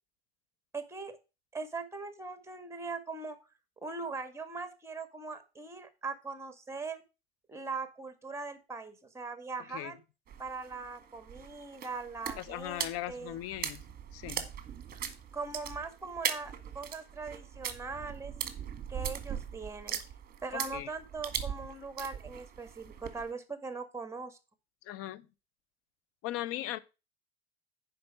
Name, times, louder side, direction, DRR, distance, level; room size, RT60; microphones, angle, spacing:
voice 1, 0.7-1.2 1.5-3.4 3.8-7.0 7.5-10.0 10.4-13.4 15.3-18.3 18.9-20.0 20.4-24.4, right 4 dB, 10° right, 1.9 m, -40 dB
sound 1, 10.3-23.3, right 8 dB, 30° right, 1.8 m, -40 dB
voice 2, 12.4-13.8 14.1-14.5 20.5-20.9 24.8-25.2 26.2-26.8, left 14 dB, 45° left, 0.9 m, -38 dB
10.5 x 5.2 x 4.8 m
hypercardioid pair, 80°, 31 cm